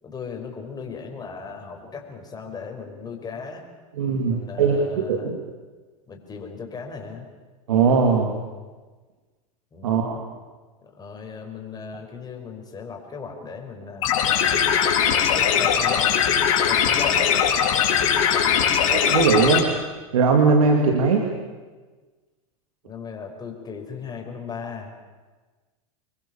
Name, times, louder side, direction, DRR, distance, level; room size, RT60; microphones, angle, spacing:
voice 1, 0.0-3.6 4.3-5.3 6.1-7.3 9.7-10.2 11.0-14.1 15.1-16.2 16.6-17.3 18.2-18.8 22.8-24.9, left 5 dB, 25° left, 2 dB, 5.4 m, -37 dB
voice 2, 3.9-5.4 7.7-8.3 9.8-10.2 18.9-19.7 20.1-21.2, right 5 dB, 80° right, 2 dB, 2.7 m, -20 dB
sound 1, 14.0-19.6, left 8 dB, 70° left, 4.5 m, -20 dB
26.0 x 21.5 x 7.2 m, 1.3 s
hypercardioid pair, 100°, 17 cm